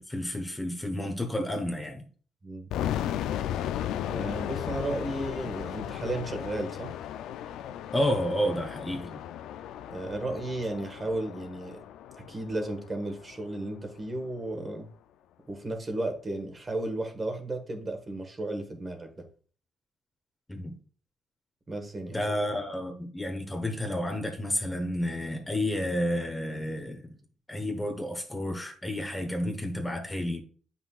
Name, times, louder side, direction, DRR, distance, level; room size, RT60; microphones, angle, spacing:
voice 1, 0.0-2.0 7.9-9.2 20.5-20.8 22.1-27.1 27.5-30.4, left 1 dB, 15° left, 1.2 m, -31 dB
sound 1, 2.7-13.6, left 10 dB, 85° left, 0.3 m, -35 dB
voice 2, 4.0-7.0 9.9-11.8 12.3-14.9 15.5-19.1 21.7-22.2, right 2 dB, 30° right, 1.5 m, -34 dB
7.9 x 5.7 x 2.4 m
cardioid pair, 90°, 0 cm